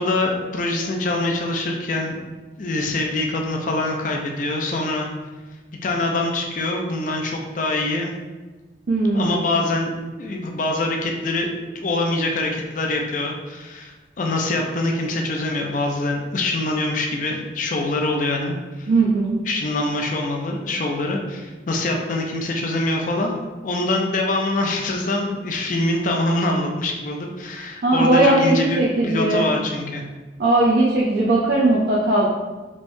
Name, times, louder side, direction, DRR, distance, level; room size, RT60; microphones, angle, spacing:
voice 1, 0.0-2.2 2.6-5.1 5.8-8.1 9.1-9.9 10.2-11.5 11.7-18.9 19.5-23.3 23.6-30.0, left 2 dB, 45° left, 1 dB, 0.4 m, -24 dB
voice 2, 8.9-9.4 18.9-19.4 27.8-29.5 30.4-32.3, right 2 dB, 55° right, -6 dB, 0.5 m, -18 dB
3.4 x 3.1 x 2.6 m, 1.3 s
head